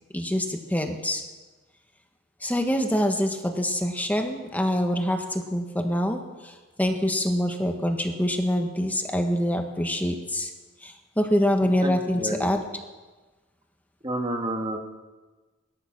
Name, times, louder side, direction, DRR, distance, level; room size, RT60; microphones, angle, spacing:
voice 1, 0.1-1.2 2.4-10.5 10.8-12.6, equal, 10° left, 4 dB, 1.4 m, -25 dB
voice 2, 11.8-12.5 14.0-14.8, right 1 dB, 25° right, 3 dB, 2.0 m, -30 dB
18.0 x 13.0 x 6.1 m, 1.3 s
head